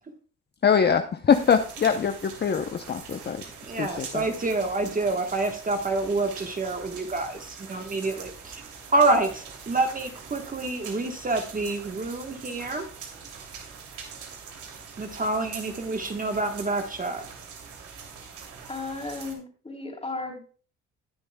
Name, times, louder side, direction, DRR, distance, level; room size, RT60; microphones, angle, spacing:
voice 1, 0.6-3.4 3.7-4.3, left 7 dB, 35° left, 8 dB, 0.7 m, -23 dB
sound 1, 1.3-19.3, right 6 dB, 80° right, 2.9 m, -43 dB
voice 2, 3.7-8.6 8.9-12.8 15.0-17.2, right 2 dB, 25° right, 5 dB, 1.3 m, -27 dB
voice 3, 18.7-20.4, left 3 dB, 20° left, 2 dB, 3.2 m, -35 dB
20.0 x 6.9 x 2.3 m, 0.41 s
cardioid pair, 90°, 30 cm